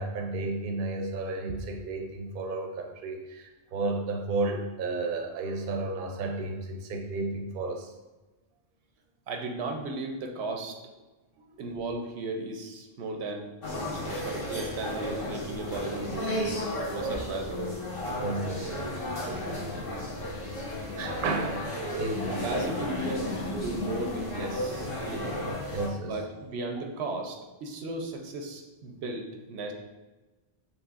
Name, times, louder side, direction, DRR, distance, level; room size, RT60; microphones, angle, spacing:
voice 1, 0.0-7.9 18.2-18.8 19.2-19.6 20.7-22.4 25.7-26.2, right 3 dB, 60° right, 2 dB, 0.7 m, -33 dB
voice 2, 9.3-10.8 11.6-13.5 13.9-16.4 16.8-17.6 21.9-25.4 26.0-29.7, right 2 dB, 90° right, 3 dB, 0.9 m, -35 dB
sound 1, 13.6-25.9, left 1 dB, 60° left, 1.3 m, -33 dB
6.1 x 3.4 x 2.4 m, 1.2 s
omnidirectional pair, 1.1 m